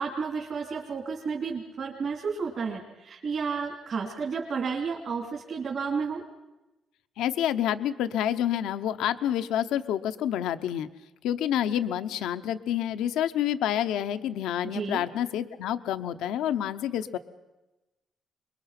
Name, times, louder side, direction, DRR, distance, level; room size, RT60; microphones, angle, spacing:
voice 1, 0.0-6.2 14.6-15.1, right 5 dB, 55° right, -2 dB, 3.2 m, -32 dB
voice 2, 7.2-10.9 11.2-17.2, left 10 dB, 90° left, 10 dB, 0.8 m, -28 dB
25.5 x 22.0 x 5.9 m, 1.0 s
cardioid pair, 90°, 0 cm